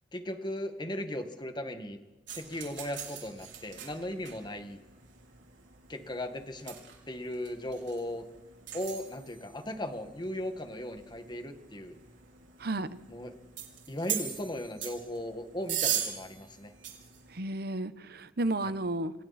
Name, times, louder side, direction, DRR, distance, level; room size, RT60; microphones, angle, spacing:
voice 1, 0.1-2.0 2.3-4.8 5.9-6.8 7.1-8.2 8.7-12.0 13.1-13.3 13.9-16.7 18.6-18.7, left 1 dB, 25° left, 7 dB, 1.9 m, -37 dB
sound 1, 2.3-17.4, right 9 dB, 90° right, 5.0 m, -41 dB
voice 2, 12.6-13.0 17.3-19.1, right 2 dB, 60° right, 13 dB, 1.0 m, -32 dB
28.5 x 25.0 x 4.3 m, 1.1 s
head